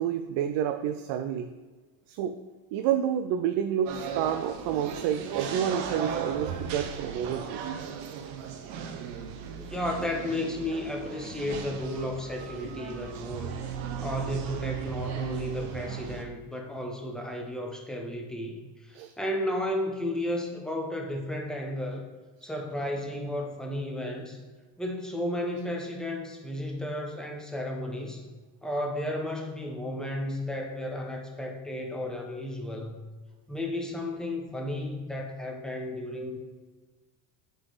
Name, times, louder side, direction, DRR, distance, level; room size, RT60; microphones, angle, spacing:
voice 1, 0.0-1.5 2.1-2.3 2.7-7.6 8.4-8.6 18.9-19.1, right 9 dB, 70° right, 7 dB, 0.6 m, -29 dB
sound 1, 3.9-16.2, right 7 dB, 90° right, 0.9 m, -36 dB
voice 2, 9.6-13.5 14.0-22.1 22.4-24.4 24.8-28.3 28.6-33.0 33.5-36.4, left 1 dB, ahead, 1 dB, 0.9 m, -33 dB
7.7 x 4.0 x 4.0 m, 1.3 s
cardioid pair, 115°, 48 cm